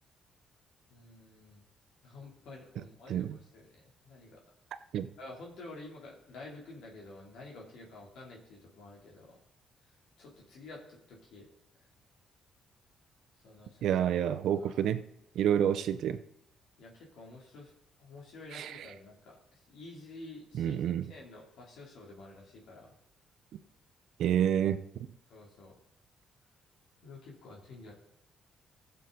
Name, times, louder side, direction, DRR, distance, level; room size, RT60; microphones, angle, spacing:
voice 1, 0.9-1.6 2.0-4.4 5.2-9.4 10.2-11.5 13.4-13.8 14.5-14.8 16.8-17.7 18.0-22.9 25.3-25.7 27.0-27.9, left 2 dB, 80° left, 3.0 m, -50 dB
voice 2, 13.8-15.0 15.3-16.2 18.5-18.9 20.5-21.1 24.2-24.8, right 10 dB, 75° right, 0.7 m, -28 dB
15.5 x 6.8 x 3.9 m
cardioid pair, 90°, 0 cm